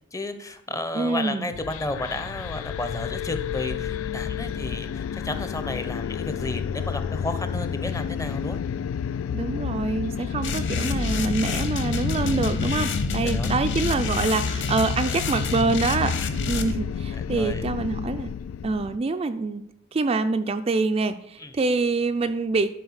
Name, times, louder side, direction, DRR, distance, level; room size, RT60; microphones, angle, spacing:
voice 1, 0.1-8.6 12.6-12.7 13.2-13.5 17.1-17.7 21.4-21.5, left 2 dB, 15° left, 9 dB, 0.8 m, -33 dB
voice 2, 0.9-1.5 9.3-16.2 16.5-18.3 18.6-19.6 19.9-22.7, right 3 dB, 30° right, 8 dB, 0.4 m, -25 dB
sound 1, 1.5-19.0, left 7 dB, 80° left, 0.3 m, -30 dB
sound 2, 10.4-16.7, left 3 dB, 65° left, 0.9 m, -29 dB
11.5 x 4.4 x 6.3 m, 0.82 s
head